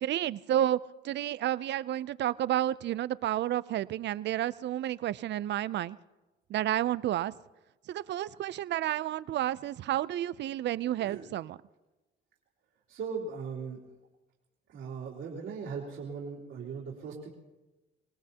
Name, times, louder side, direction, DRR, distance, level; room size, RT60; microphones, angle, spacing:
voice 1, 0.0-0.8 1.0-6.0 6.5-7.3 7.9-11.6, right 12 dB, 65° right, 18 dB, 0.5 m, -31 dB
voice 2, 12.9-13.8 14.7-17.3, right 5 dB, 85° right, -5 dB, 3.2 m, -38 dB
25.0 x 19.0 x 2.9 m, 1.1 s
cardioid pair, 90°, 20 cm